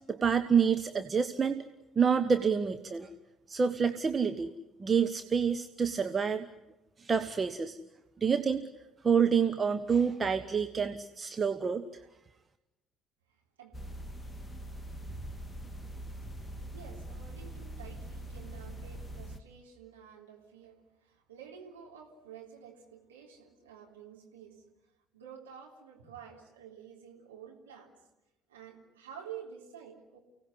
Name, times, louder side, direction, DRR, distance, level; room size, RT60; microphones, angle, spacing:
voice 1, 0.1-1.7 1.9-3.1 3.5-4.5 4.8-6.5 7.0-7.8 8.2-8.7 9.0-12.0, right 6 dB, 30° right, 9 dB, 1.2 m, -28 dB
voice 2, 13.3-13.8 16.5-24.6 25.1-28.0 28.5-30.2, right 8 dB, 75° right, -1 dB, 3.6 m, -50 dB
sound 1, 13.7-19.4, right 1 dB, 10° left, 1.8 m, -43 dB
29.5 x 18.0 x 9.9 m, 0.97 s
figure-of-eight pair, 50°, 0 cm